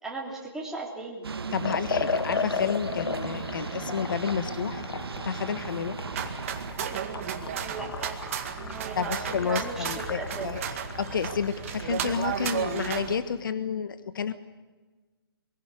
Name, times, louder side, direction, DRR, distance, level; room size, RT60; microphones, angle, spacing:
voice 1, 0.0-1.3 7.3-8.2 8.5-10.5, right 3 dB, 5° right, -3 dB, 3.2 m, -37 dB
sound 1, 1.2-6.7, right 5 dB, 75° right, 1.6 m, -36 dB
voice 2, 1.5-4.8 5.2-6.0 8.9-10.6 11.0-14.3, left 6 dB, 55° left, 12 dB, 1.4 m, -30 dB
Liquid, 1.6-12.8, left 5 dB, 80° left, 1.0 m, -36 dB
sound 2, 6.1-13.1, right 8 dB, 35° right, 2.1 m, -34 dB
23.5 x 17.0 x 9.8 m, 1.3 s
hypercardioid pair, 165°, 13 cm